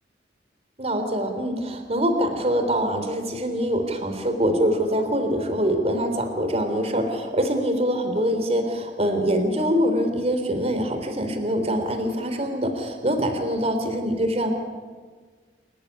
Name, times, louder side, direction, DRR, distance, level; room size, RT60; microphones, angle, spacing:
voice 1, 0.8-14.5, equal, 35° right, 6 dB, 3.7 m, -24 dB
29.5 x 14.5 x 9.9 m, 1.5 s
head